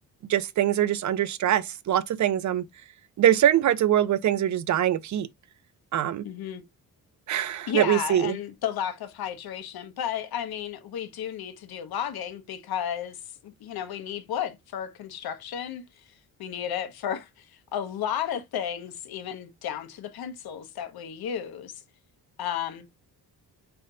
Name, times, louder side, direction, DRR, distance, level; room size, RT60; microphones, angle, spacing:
voice 1, 0.3-2.6 3.2-5.3 5.9-6.3 7.3-8.4, right 11 dB, 50° right, 0.5 m, -23 dB
voice 2, 6.2-6.6 7.7-13.2 13.4-15.8 16.4-17.3 17.7-21.7 22.4-22.9, left 9 dB, 75° left, 1.0 m, -33 dB
5.3 x 3.3 x 2.6 m
cardioid pair, 115°, 37 cm